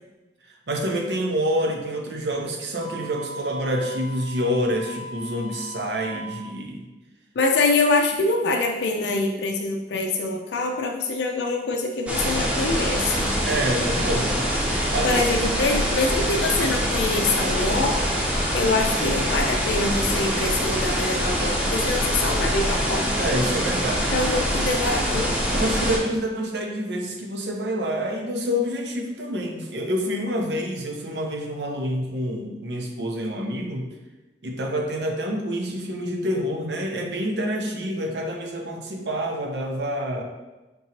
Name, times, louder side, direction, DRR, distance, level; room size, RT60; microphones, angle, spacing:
voice 1, 0.7-6.8 13.4-14.4 14.7-15.2 15.7-15.8 23.2-24.1 24.6-24.7 25.5-33.9 34.4-40.2, equal, 70° right, 2 dB, 0.7 m, -27 dB
Wind instrument woodwind instrument, 2.8-6.5, equal, 50° left, 0.8 m, -39 dB
voice 2, 7.4-13.3 15.0-18.0 18.5-23.0 24.1-25.3, left 3 dB, 70° left, 2 dB, 0.4 m, -24 dB
sound 1, 12.1-26.0, equal, 5° right, 0.7 m, -24 dB
5.2 x 2.8 x 2.9 m, 1.1 s
head